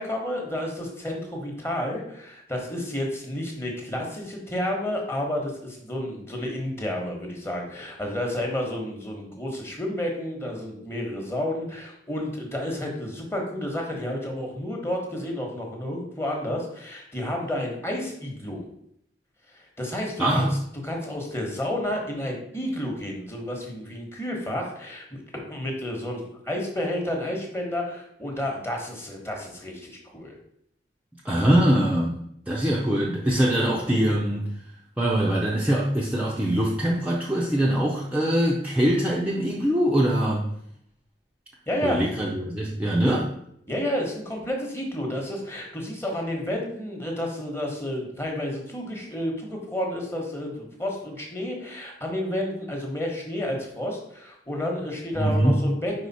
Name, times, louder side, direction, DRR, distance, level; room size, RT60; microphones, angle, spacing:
voice 1, 0.0-18.6 19.5-20.5 20.8-30.4 41.7-42.0 43.7-56.1, left 1 dB, 15° left, 1 dB, 1.2 m, -31 dB
voice 2, 20.2-20.5 31.2-32.2 32.5-34.5 35.0-40.4 41.8-43.3 55.2-55.6, right 1 dB, 5° right, -4 dB, 0.6 m, -23 dB
5.0 x 4.8 x 4.1 m, 0.72 s
head